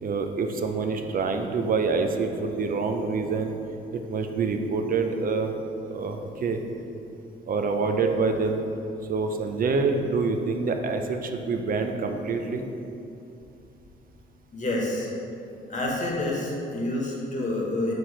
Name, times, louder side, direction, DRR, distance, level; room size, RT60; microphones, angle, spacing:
voice 1, 0.0-3.5 3.9-5.5 5.9-6.6 7.5-8.6 9.1-12.6, right 4 dB, 45° right, 5 dB, 0.5 m, -26 dB
voice 2, 14.5-15.1 15.7-17.9, left 1 dB, 40° left, -3 dB, 1.3 m, -28 dB
4.6 x 4.3 x 4.9 m, 2.7 s
cardioid pair, 90°, 20 cm